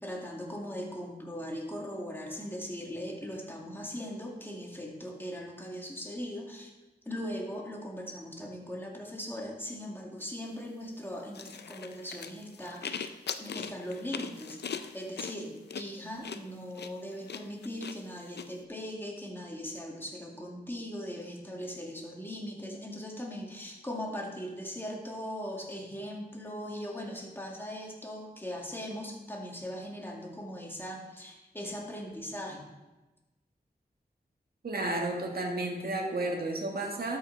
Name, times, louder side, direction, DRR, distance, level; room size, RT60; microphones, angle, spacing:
voice 1, 0.0-6.7 7.1-32.6, equal, 15° left, -1 dB, 2.1 m, -39 dB
sound 1, 11.3-18.5, left 6 dB, 85° left, 0.5 m, -40 dB
voice 2, 34.6-37.2, right 2 dB, 65° right, 1 dB, 1.8 m, -32 dB
12.5 x 5.7 x 4.0 m, 1.1 s
wide cardioid pair, 60°, 17 cm